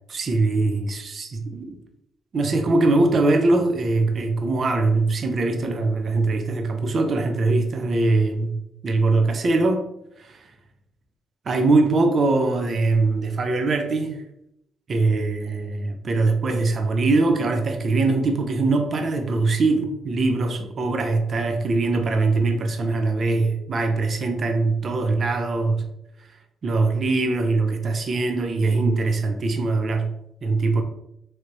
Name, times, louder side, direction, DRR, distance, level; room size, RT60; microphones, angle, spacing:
voice 1, 0.1-1.8 2.3-8.5 8.8-9.9 10.2-10.4 11.5-14.2 14.9-25.8 26.6-30.1 30.4-30.8, right 3 dB, 50° right, 6 dB, 0.5 m, -22 dB
3.3 x 2.9 x 2.6 m, 0.80 s
cardioid pair, 90°, 0 cm